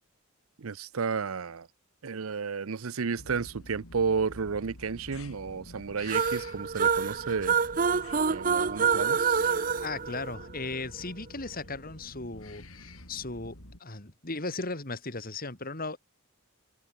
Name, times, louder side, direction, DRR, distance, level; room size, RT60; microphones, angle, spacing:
voice 1, 0.6-1.7 2.0-7.6 8.3-9.5, right 5 dB, 80° right, 0.7 m, -32 dB
sound 1, 3.2-13.8, left 1 dB, 85° left, 6.0 m, -49 dB
sound 2, 6.1-10.8, right 6 dB, 40° right, 0.8 m, -27 dB
voice 2, 9.8-13.5 13.8-16.0, left 3 dB, 45° left, 3.8 m, -37 dB
head